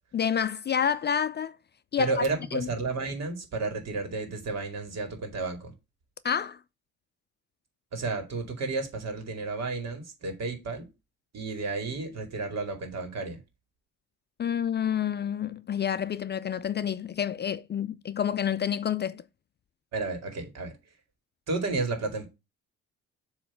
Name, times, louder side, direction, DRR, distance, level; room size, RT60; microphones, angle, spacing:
voice 1, 0.1-1.6 1.9-2.1 2.5-2.7 6.2-6.6 14.4-19.2, left 8 dB, 35° left, 0.4 m, -28 dB
voice 2, 2.0-5.7 7.9-10.9 11.3-13.4 19.9-20.7 21.5-22.3, right 3 dB, 60° right, 2.3 m, -32 dB
7.5 x 3.2 x 5.8 m
cardioid pair, 90°, 30 cm